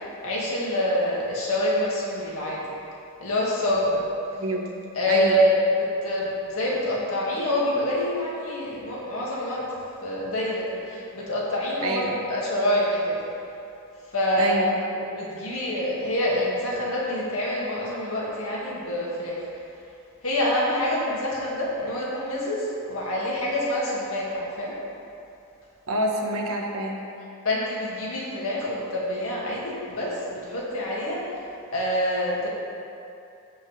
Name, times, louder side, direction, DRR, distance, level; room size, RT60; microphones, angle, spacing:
voice 1, 0.0-2.6 3.2-4.0 4.9-13.2 14.1-14.7 14.9-19.4 20.2-24.7 27.4-31.2 31.7-32.5, left 1 dB, 70° left, -5 dB, 2.2 m, -26 dB
voice 2, 4.4-4.7 5.1-5.4 11.8-12.2 14.4-14.8 25.9-27.0, right 1 dB, 70° right, 0 dB, 1.3 m, -27 dB
15.5 x 5.7 x 3.4 m, 2.7 s
head